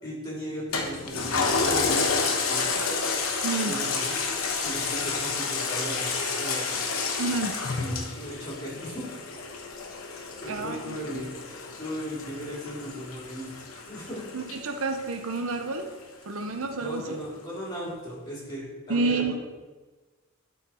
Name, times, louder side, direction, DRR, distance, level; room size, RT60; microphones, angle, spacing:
voice 1, 0.0-3.0 3.6-4.1 4.5-6.8 7.8-9.0 10.4-11.3 11.8-14.2 16.8-19.3, equal, 20° left, -6 dB, 2.7 m, -37 dB
Toilet flush, 0.7-15.5 16.0-16.1, left 4 dB, 80° left, 1.0 m, -30 dB
voice 2, 3.4-3.8 7.2-7.6 10.5-11.2 14.3-15.9 16.3-17.2 18.9-19.3, right 3 dB, 80° right, 6 dB, 0.7 m, -29 dB
12.0 x 4.2 x 4.3 m, 1.3 s
head